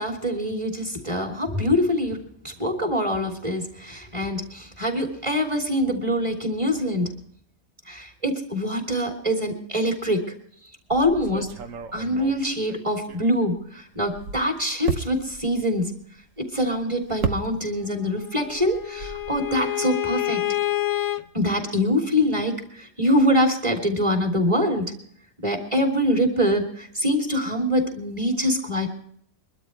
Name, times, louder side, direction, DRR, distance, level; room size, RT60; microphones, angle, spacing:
voice 1, 0.0-2.2 2.4-7.1 7.9-10.2 10.9-11.5 11.9-15.9 16.5-20.4 21.3-24.9 25.4-28.9, equal, 20° right, 2 dB, 3.1 m, -24 dB
sound 1, 10.9-13.6 13.9-18.0 18.3-19.6, right 6 dB, 65° right, 1.3 m, -34 dB
Bowed string instrument, 18.1-21.2, left 14 dB, 55° left, 1.0 m, -27 dB
23.5 x 12.5 x 3.3 m, 0.64 s
omnidirectional pair, 1.5 m